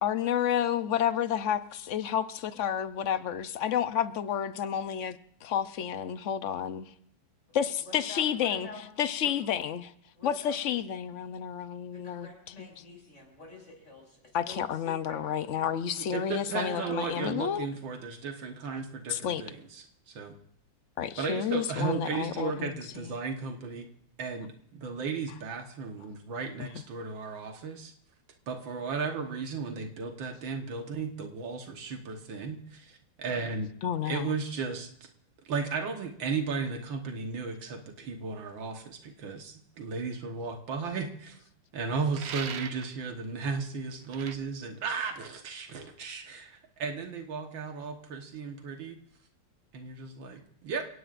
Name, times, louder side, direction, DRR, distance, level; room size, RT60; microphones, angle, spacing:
voice 1, 0.0-6.9 7.5-8.7 9.0-9.9 10.2-12.3 14.3-17.7 19.1-19.4 21.0-23.1 26.6-26.7 33.8-34.3, left 9 dB, 60° left, 12 dB, 0.8 m, -30 dB
voice 2, 7.5-8.9 9.2-9.3 10.1-10.6 11.9-15.2 16.5-17.2 17.7-17.8, left 2 dB, 35° left, 0 dB, 6.7 m, -47 dB
voice 3, 16.0-20.3 21.2-23.9 24.2-27.9 28.5-33.7 34.0-34.9 35.5-41.4 41.7-49.0 49.7-50.9, right 4 dB, 85° right, 4 dB, 2.0 m, -35 dB
sound 1, 42.1-43.0 44.1-44.4, right 7 dB, 65° right, 0.6 m, -39 dB
30.0 x 17.0 x 2.5 m, 0.72 s
omnidirectional pair, 2.0 m